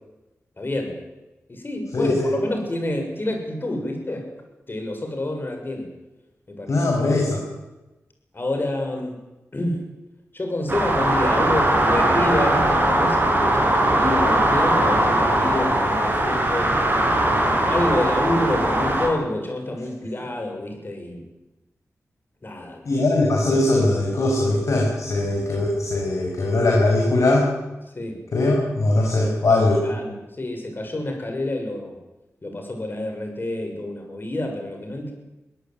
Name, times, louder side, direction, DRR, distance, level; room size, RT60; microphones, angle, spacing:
voice 1, 0.6-1.0 1.5-4.3 4.7-5.9 6.5-6.8 8.3-9.2 9.5-9.9 10.3-16.8 17.7-21.2 22.4-23.0 28.0-28.2 29.1-32.0 32.4-35.1, left 1 dB, 40° left, 4 dB, 7.0 m, -28 dB
voice 2, 1.9-2.3 6.7-7.4 22.8-27.5 28.3-29.8, left 2 dB, 70° left, -1 dB, 6.3 m, -20 dB
sound 1, 10.7-19.1, right 1 dB, 35° right, 6.9 m, -20 dB
23.0 x 18.0 x 9.4 m, 1.0 s
wide cardioid pair, 85°, 5 cm